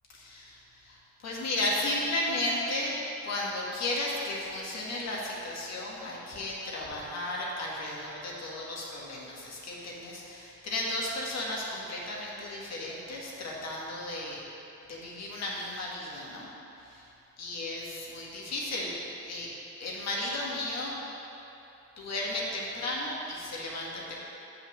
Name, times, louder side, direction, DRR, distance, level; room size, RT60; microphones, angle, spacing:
voice 1, 0.1-3.0 3.2-14.4 14.9-16.5 16.9-17.0 17.4-18.9 19.3-19.5 19.8-20.9 22.0-24.2, left 1 dB, 60° left, -4 dB, 1.9 m, -34 dB
7.5 x 5.7 x 6.2 m, 2.9 s
cardioid pair, 90°, 30 cm